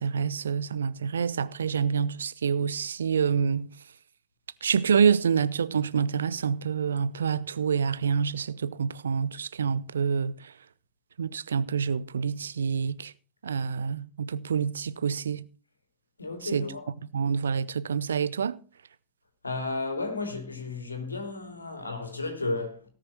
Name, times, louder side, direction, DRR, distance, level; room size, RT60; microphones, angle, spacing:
voice 1, 0.0-3.7 4.6-10.3 11.2-13.1 13.4-15.5 16.4-16.7 17.1-18.6, right 6 dB, 70° right, 0.7 m, -27 dB
voice 2, 16.2-16.9 19.4-22.8, left 3 dB, 80° left, 3.1 m, -33 dB
18.0 x 6.5 x 5.8 m
figure-of-eight pair, 90°, 0 cm